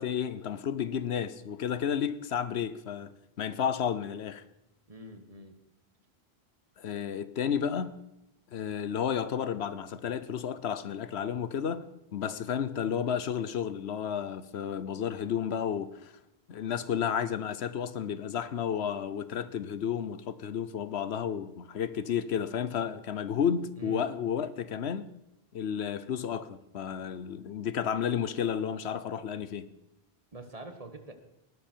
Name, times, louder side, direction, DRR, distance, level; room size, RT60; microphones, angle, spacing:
voice 1, 0.0-4.4 6.8-8.0 8.5-16.1 16.5-25.1 25.5-29.7, left 8 dB, 85° left, 1.1 m, -32 dB
voice 2, 4.9-5.6 23.8-24.0 30.3-31.1, right 2 dB, 35° right, 1.6 m, -44 dB
19.0 x 12.0 x 4.6 m
omnidirectional pair, 1.1 m